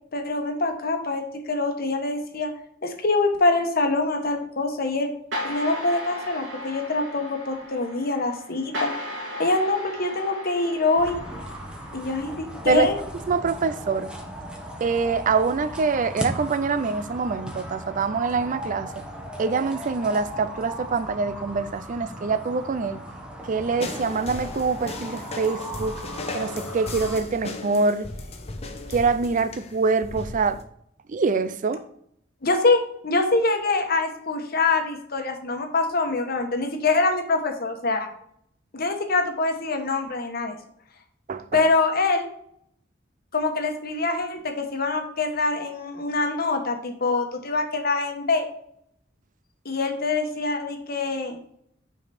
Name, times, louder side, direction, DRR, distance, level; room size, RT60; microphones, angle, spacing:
voice 1, 0.1-2.5 2.8-5.1 5.4-8.9 9.4-11.2 11.9-12.9 32.4-38.1 38.7-40.6 41.5-42.3 43.3-48.5 49.6-51.4, left 3 dB, 55° left, 1.2 m, -24 dB
sound 1, 5.3-12.2, left 1 dB, 85° right, 3.1 m, -36 dB
sound 2, 11.0-27.2, right 1 dB, 5° right, 1.1 m, -37 dB
voice 2, 13.3-14.1 14.8-18.9 19.4-23.0 23.4-26.0 26.3-28.1 28.9-30.6 31.1-31.8 41.3-41.6, right 4 dB, 45° right, 0.4 m, -25 dB
sound 3, 23.8-30.6, left 2 dB, 35° left, 0.8 m, -36 dB
6.3 x 5.0 x 4.2 m
head